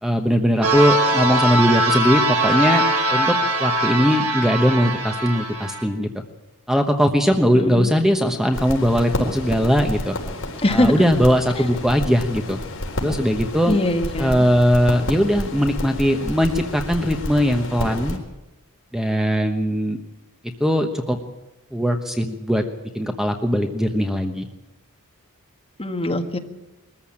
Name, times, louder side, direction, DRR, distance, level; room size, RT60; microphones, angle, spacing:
voice 1, 0.0-2.8 3.1-6.2 6.7-10.1 10.7-12.6 13.0-13.8 14.2-18.2 18.9-20.0 20.6-21.2 21.7-22.6 22.9-24.5, equal, ahead, 5 dB, 1.1 m, -20 dB
sound 1, 0.6-5.8, right 1 dB, 85° right, 4.3 m, -21 dB
voice 2, 7.5-7.9 10.6-10.9 11.5-11.7 13.7-14.4 25.8-26.4, left 1 dB, 25° left, 5 dB, 1.6 m, -22 dB
sound 2, 8.5-18.2, left 1 dB, 60° left, 4.3 m, -30 dB
21.5 x 14.5 x 8.8 m, 0.98 s
head